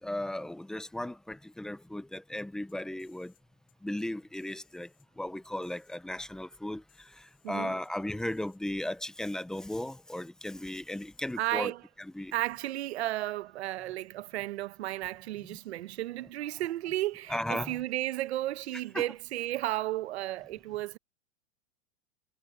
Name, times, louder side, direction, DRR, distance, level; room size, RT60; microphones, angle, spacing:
voice 1, 0.0-3.3 3.8-11.7 12.0-12.3 15.5-15.6 17.3-17.8 18.9-19.1, left 1 dB, ahead, 0.5 m, -36 dB
sound 1, 2.4-3.4 3.7-4.1 4.3-5.1 5.6-6.6 6.9-7.9 8.2-8.6 8.8-8.9 9.2-9.3 9.6-10.3 10.9-11.4 11.6-11.7 12.0-13.3, left 12 dB, 25° left, 7.5 m, -69 dB
voice 2, 7.4-7.8 11.4-11.9 12.3-21.0, right 15 dB, 80° right, 1.0 m, -33 dB
supercardioid pair, 160°, 32 cm